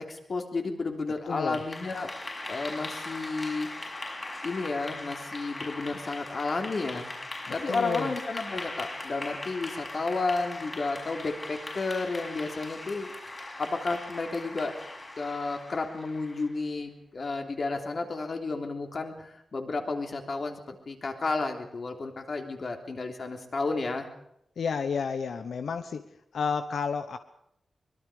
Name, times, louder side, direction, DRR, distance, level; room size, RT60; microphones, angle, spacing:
voice 1, 0.0-2.1 2.5-3.7 4.4-7.1 7.5-13.1 13.6-14.8 15.2-24.1, left 3 dB, 45° left, 4 dB, 3.3 m, -32 dB
voice 2, 1.3-1.6 7.7-8.1 24.6-26.0 26.3-27.2, left 6 dB, 90° left, 10 dB, 1.1 m, -31 dB
Clapping / Applause, 1.3-16.6, left 2 dB, 25° left, 6.0 m, -40 dB
24.5 x 22.5 x 5.1 m, 0.75 s
wide cardioid pair, 180°, 0 cm